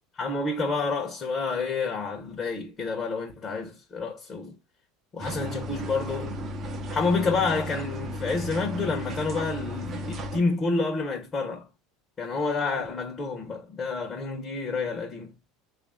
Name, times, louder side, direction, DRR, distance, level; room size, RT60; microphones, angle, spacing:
voice 1, 0.2-4.5 5.1-6.4 6.9-11.7 12.2-15.3, left 4 dB, 30° left, 0.9 m, -29 dB
sound 1, 5.2-10.4, equal, 35° right, 0.8 m, -34 dB
3.4 x 2.5 x 3.5 m
supercardioid pair, 120°, 0 cm